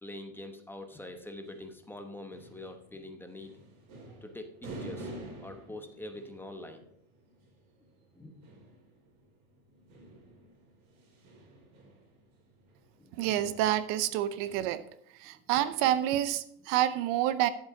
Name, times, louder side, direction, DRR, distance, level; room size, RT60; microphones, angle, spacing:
voice 1, 0.0-3.5 4.2-5.1 5.4-6.8 8.1-8.4 9.9-10.1 13.0-13.1 15.3-15.4, left 1 dB, 5° left, 6 dB, 0.9 m, -44 dB
sound 1, 0.9-14.5, right 1 dB, 75° right, 4.7 m, -50 dB
voice 2, 13.2-14.8 15.2-17.5, right 12 dB, 50° right, 15 dB, 0.7 m, -28 dB
11.0 x 7.9 x 4.8 m, 0.73 s
supercardioid pair, 145°, 42 cm